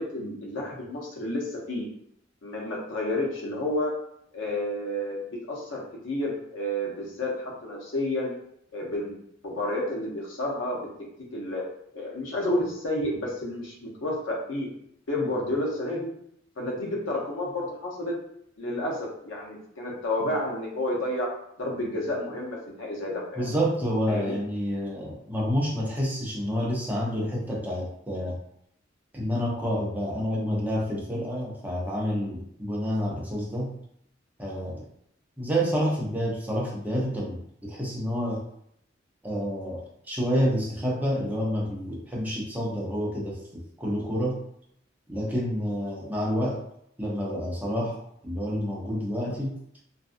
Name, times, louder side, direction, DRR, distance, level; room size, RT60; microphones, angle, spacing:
voice 1, 0.0-1.9 2.4-3.9 4.3-8.3 8.7-9.2 9.4-10.8 11.3-11.6 11.9-14.7 15.1-16.1 16.6-18.1 18.6-21.3 21.6-23.5 24.1-24.4, left 1 dB, 90° left, -2 dB, 0.7 m, -30 dB
voice 2, 23.4-28.4 29.1-33.7 34.4-34.9 35.4-38.4 39.2-44.4 45.1-46.6 47.0-49.5, equal, 10° right, -4 dB, 0.6 m, -29 dB
2.5 x 2.3 x 2.5 m, 0.72 s
head